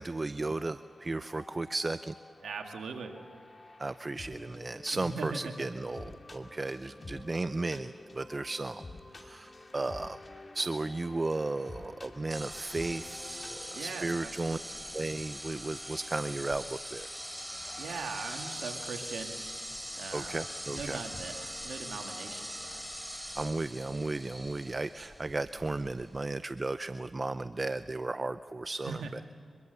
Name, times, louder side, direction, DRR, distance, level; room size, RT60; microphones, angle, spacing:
voice 1, 0.0-2.1 3.8-8.8 9.2-10.2 10.5-14.6 14.9-17.1 20.1-21.0 23.0-29.2, right 2 dB, 40° right, 13 dB, 0.6 m, -35 dB
sound 1, 0.6-14.0, left 2 dB, 45° left, 2.4 m, -49 dB
voice 2, 2.4-3.1 4.9-5.5 13.7-14.8 17.8-19.3 19.9-20.5 20.7-22.8 28.8-29.2, right 5 dB, 85° right, 4 dB, 2.0 m, -40 dB
sound 2, 12.3-26.2, equal, ahead, 4.1 m, -42 dB
24.0 x 23.0 x 6.8 m, 2.5 s
cardioid pair, 40°, 0 cm